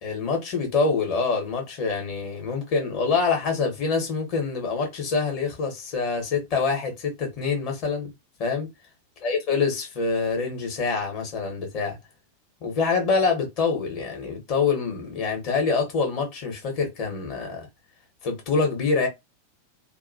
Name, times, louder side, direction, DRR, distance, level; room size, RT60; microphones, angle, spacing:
voice 1, 0.0-8.1 8.4-8.7 9.2-12.0 12.6-17.7 18.2-19.1, left 4 dB, 45° left, 1.2 m, -25 dB
2.9 x 2.4 x 2.7 m
figure-of-eight pair, 90°, 0 cm